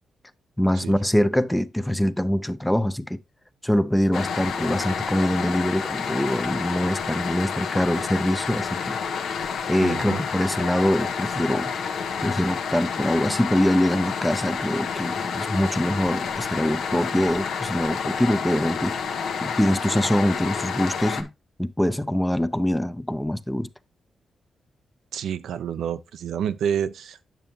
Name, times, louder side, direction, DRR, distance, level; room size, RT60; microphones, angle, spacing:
voice 1, 0.6-3.2 3.6-9.0 9.7-11.7 12.2-19.0 19.4-21.3 21.6-23.7, equal, 5° left, 0.5 m, -24 dB
sound 1, 4.1-21.2, left 6 dB, 90° left, 1.0 m, -29 dB
voice 2, 9.8-10.2 25.1-27.2, right 8 dB, 90° right, 0.5 m, -28 dB
9.0 x 6.7 x 2.8 m
cardioid pair, 120°, 0 cm